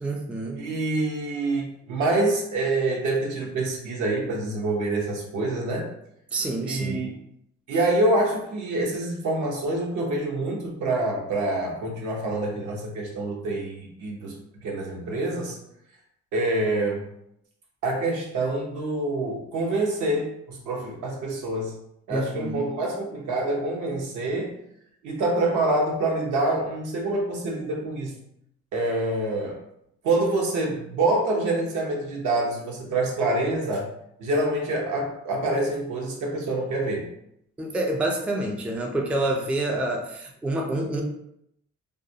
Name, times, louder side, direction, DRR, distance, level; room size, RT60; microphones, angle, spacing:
voice 1, 0.0-0.6 6.3-7.1 22.1-22.7 37.6-41.0, right 1 dB, 5° right, 1 dB, 0.3 m, -27 dB
voice 2, 0.6-5.9 6.6-7.1 7.7-15.6 16.3-17.0 17.8-21.7 22.1-24.6 25.0-28.2 28.7-29.6 30.0-33.9 34.2-37.1, right 2 dB, 75° right, -1 dB, 0.8 m, -26 dB
2.4 x 2.1 x 2.7 m, 0.76 s
cardioid pair, 90°, 30 cm